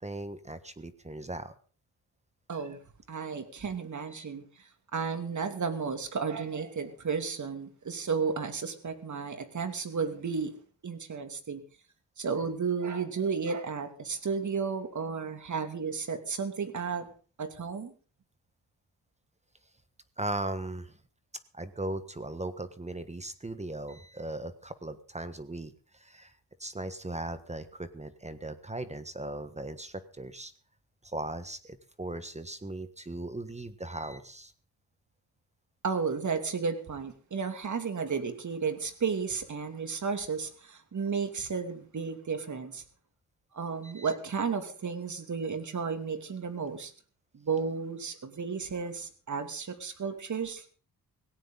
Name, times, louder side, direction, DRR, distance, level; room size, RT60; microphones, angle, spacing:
voice 1, 0.0-1.5 4.1-4.2 20.2-21.0 21.5-26.3 26.6-30.5 31.0-34.5 43.8-44.1, right 2 dB, 15° right, 11 dB, 1.4 m, -38 dB
voice 2, 2.5-2.8 3.1-10.5 10.8-11.6 12.2-17.1 17.4-17.9 35.8-42.8 43.5-46.9 47.3-50.6, right 5 dB, 45° right, 8 dB, 2.7 m, -33 dB
17.5 x 17.0 x 4.0 m, 0.39 s
cardioid pair, 100°, 40 cm